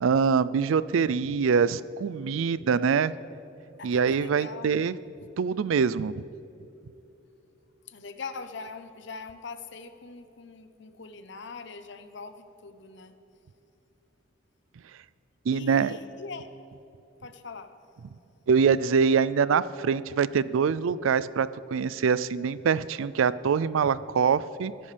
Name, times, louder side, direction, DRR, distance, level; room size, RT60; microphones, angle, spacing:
voice 1, 0.0-3.1 3.8-5.0 5.4-6.2 15.5-16.0 18.5-24.7, right 6 dB, 75° right, 17 dB, 0.4 m, -24 dB
voice 2, 3.8-4.8 7.9-13.1 15.5-16.5 17.2-17.7, left 4 dB, 60° left, 9 dB, 0.8 m, -42 dB
22.5 x 11.0 x 3.4 m, 2.9 s
head